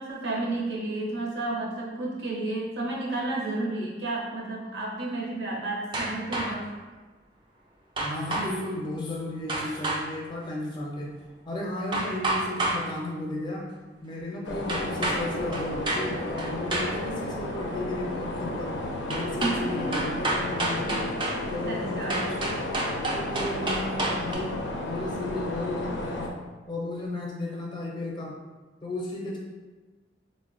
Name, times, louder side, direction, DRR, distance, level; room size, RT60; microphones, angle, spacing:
voice 1, 0.0-6.7 19.4-20.0 21.4-22.2, right 2 dB, 70° right, -3 dB, 0.8 m, -32 dB
sound 1, 5.9-6.7 8.0-8.5 9.5-10.0 11.9-12.8 14.7-15.2 15.5-16.1 16.4-16.9 19.1-19.6 19.9-21.4 22.1-24.4, right 2 dB, 25° right, 0.4 m, -29 dB
voice 2, 8.0-11.2 11.5-13.7 14.0-18.8 19.1-21.1 21.5-22.7 23.1-24.6 24.8-26.3 26.7-28.4 28.8-29.4, left 1 dB, 25° left, -3 dB, 0.6 m, -34 dB
sound 2, 14.4-26.3, left 1 dB, 75° left, 0.4 m, -33 dB
4.1 x 2.1 x 2.5 m, 1.3 s
head